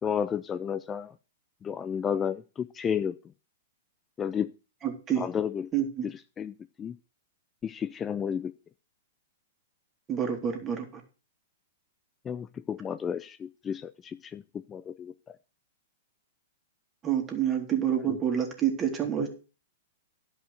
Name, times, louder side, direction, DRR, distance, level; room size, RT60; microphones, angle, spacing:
voice 1, 0.0-1.2 1.6-3.2 4.2-4.5 5.2-7.0 7.6-8.5 12.2-15.4 18.0-18.2 19.2-19.3, left 8 dB, 20° left, 13 dB, 0.4 m, -32 dB
voice 2, 4.8-5.3 5.7-6.1 10.1-11.0 17.0-19.3, right 9 dB, 25° right, 4 dB, 2.7 m, -28 dB
11.5 x 5.3 x 6.6 m, 0.34 s
hypercardioid pair, 120°, 0 cm